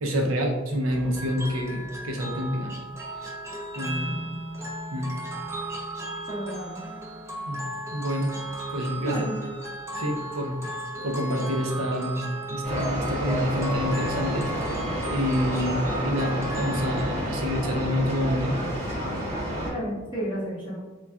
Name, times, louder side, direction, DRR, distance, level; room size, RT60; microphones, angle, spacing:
voice 1, 0.0-2.8 3.8-4.4 4.9-5.1 7.5-7.6 7.9-8.3 8.7-9.3 10.0-10.8 11.0-14.8 15.1-18.6, equal, 85° right, 2 dB, 0.5 m, -28 dB
sound 1, 0.9-17.3, right 1 dB, 15° right, 0.4 m, -36 dB
voice 2, 6.3-6.8 9.0-9.4 11.0-11.1 19.6-20.8, equal, 25° left, -7 dB, 0.7 m, -32 dB
sound 2, 12.6-19.7, equal, 35° right, 0.9 m, -30 dB
2.3 x 2.2 x 3.5 m, 1.1 s
head